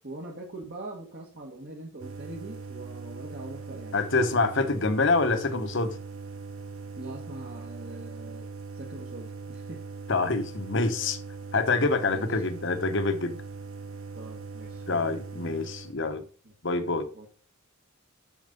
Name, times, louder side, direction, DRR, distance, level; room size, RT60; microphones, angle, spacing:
voice 1, 0.0-4.0 7.0-9.8 12.1-12.3 14.1-15.0 16.4-16.5 17.1-17.3, right 2 dB, 50° right, 1.5 m, -42 dB
sound 1, 2.0-15.9, right 4 dB, 75° right, 0.8 m, -41 dB
voice 2, 3.9-6.0 10.1-11.2 11.5-13.4 14.9-16.2 16.6-17.1, left 3 dB, 60° left, 1.1 m, -26 dB
7.2 x 6.3 x 5.2 m
head